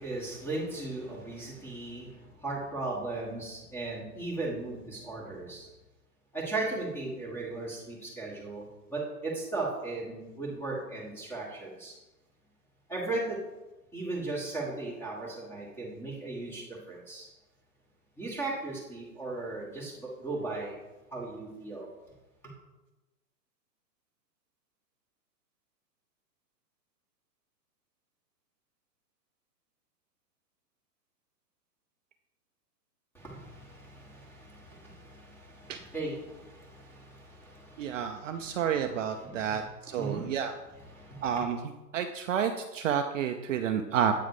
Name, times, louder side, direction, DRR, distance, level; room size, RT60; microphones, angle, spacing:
voice 1, 0.0-5.7 6.3-11.9 12.9-13.4 13.9-17.3 18.2-20.8 21.1-21.9 33.1-38.6 39.2-40.3 40.9-41.3, right 2 dB, 5° left, -4 dB, 1.5 m, -37 dB
voice 2, 37.8-40.5 41.2-41.6 41.9-44.2, right 8 dB, 55° right, 6 dB, 0.5 m, -30 dB
8.4 x 3.9 x 4.8 m, 1.1 s
hypercardioid pair, 145°, 49 cm